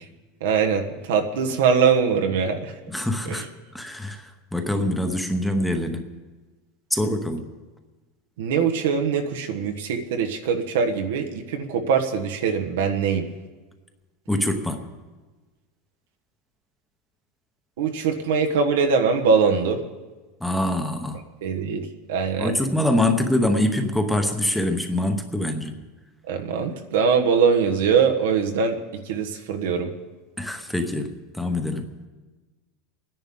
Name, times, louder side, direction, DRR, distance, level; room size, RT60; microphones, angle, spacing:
voice 1, 0.4-2.7 3.2-3.4 8.4-13.3 17.8-19.8 21.4-22.5 26.3-28.8 29.0-29.9, right 6 dB, 85° right, 4 dB, 1.4 m, -22 dB
voice 2, 2.9-3.5 3.7-6.1 6.9-7.5 14.3-14.9 20.4-21.2 22.4-25.7 30.4-31.9, left 1 dB, 5° left, 5 dB, 0.9 m, -24 dB
28.5 x 10.5 x 3.8 m, 1.3 s
supercardioid pair, 155°, 0 cm